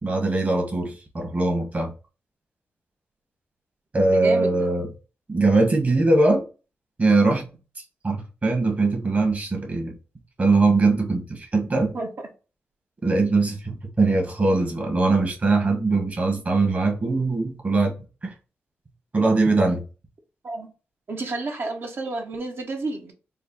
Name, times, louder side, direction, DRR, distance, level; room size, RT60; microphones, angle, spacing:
voice 1, 0.0-1.9 3.9-4.9 5.3-6.4 7.0-7.5 8.0-9.9 10.4-11.9 13.0-17.9 18.2-18.3 19.1-19.8, right 3 dB, 35° right, 1.3 m, -21 dB
voice 2, 4.1-4.7 11.9-12.1 20.4-20.7 21.1-23.1, right 3 dB, 55° right, 0.9 m, -30 dB
4.2 x 2.1 x 3.8 m
cardioid pair, 90°, 4 cm